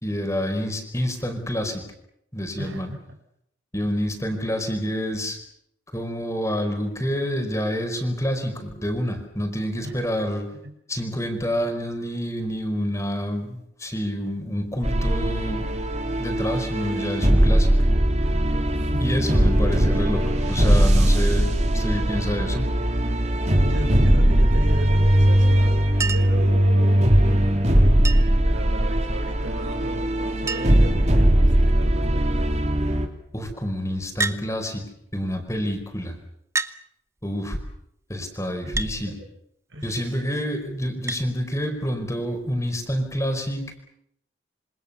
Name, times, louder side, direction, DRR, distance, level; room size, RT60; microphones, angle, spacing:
voice 1, 0.0-1.8 2.3-2.9 3.7-5.4 5.9-10.4 10.9-15.7 16.2-17.8 19.0-21.5 21.7-22.7 33.3-34.8 35.1-36.2 37.2-37.6 38.1-39.2 39.8-43.7, equal, 15° left, 5 dB, 5.0 m, -28 dB
voice 2, 2.6-3.2 9.8-10.0 10.6-10.7 18.7-19.4 23.6-27.2 28.4-32.5 38.6-39.2 39.7-40.2, right 1 dB, 80° right, 6 dB, 5.9 m, -36 dB
sound 1, 14.8-33.1, right 1 dB, 35° right, 3.3 m, -20 dB
Chink clink, 26.0-26.4 28.0-28.5 29.8-29.9 30.1-30.2 30.5-30.9 31.7-32.1 34.2-34.4 35.5-35.6 36.6-36.8 38.8-39.0 41.1-41.3 42.7-42.8, right 4 dB, 15° right, 1.0 m, -29 dB
27.5 x 26.0 x 7.0 m, 0.75 s
head